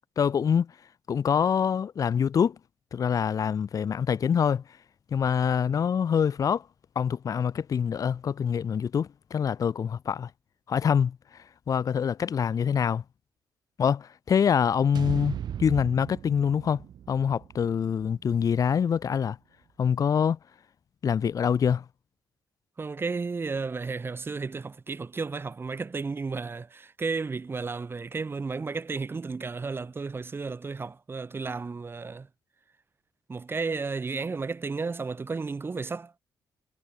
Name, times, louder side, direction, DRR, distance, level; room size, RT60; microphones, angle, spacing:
voice 1, 0.2-0.7 1.1-2.6 2.9-4.6 5.1-6.7 6.9-10.3 10.7-13.0 13.8-19.4 19.8-20.4 21.0-21.8, left 7 dB, 50° left, 1.1 m, -25 dB
sound 1, 14.9-19.2, right 9 dB, 65° right, 3.4 m, -38 dB
voice 2, 22.8-32.3 33.3-36.2, right 4 dB, 30° right, 2.5 m, -33 dB
cardioid pair, 95°, 8 cm